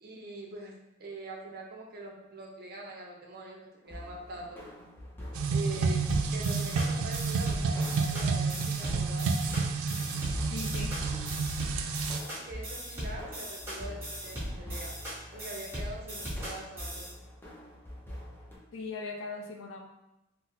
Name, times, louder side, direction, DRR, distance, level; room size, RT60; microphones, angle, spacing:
voice 1, 0.0-0.7 1.0-4.6 5.5-9.3 12.3-15.0 15.3-17.1, right 2 dB, 50° right, 0 dB, 0.6 m, -43 dB
sound 1, 3.8-18.6, left 1 dB, 10° left, 0.5 m, -45 dB
sound 2, 5.3-12.2, right 4 dB, 90° right, 0.3 m, -30 dB
sound 3, 6.1-17.1, equal, 10° right, 1.1 m, -39 dB
voice 2, 10.5-11.0 18.7-19.8, left 3 dB, 70° left, 1 dB, 0.5 m, -39 dB
4.0 x 2.0 x 2.7 m, 0.90 s
head